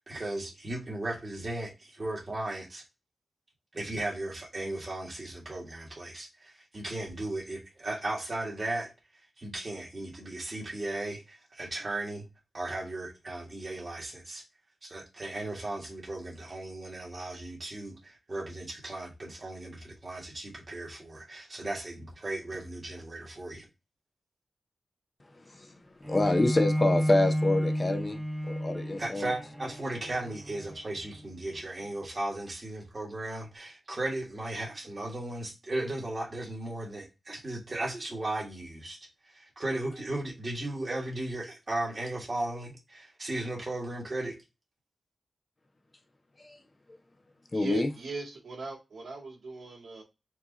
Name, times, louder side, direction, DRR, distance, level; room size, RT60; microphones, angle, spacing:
voice 1, 0.1-2.8 3.7-8.9 9.4-12.2 12.5-14.4 14.8-23.7 29.0-39.0 39.3-44.4, right 2 dB, 30° right, 1.7 m, -36 dB
voice 2, 25.3-25.7 26.0-28.2 28.4-29.3 46.4-46.6 46.9-47.0 47.5-47.9, left 2 dB, 30° left, 0.5 m, -27 dB
Bowed string instrument, 26.0-31.3, equal, ahead, 0.9 m, -31 dB
voice 3, 47.5-50.0, right 4 dB, 75° right, 2.0 m, -39 dB
4.6 x 2.7 x 3.8 m
wide cardioid pair, 145°, 0 cm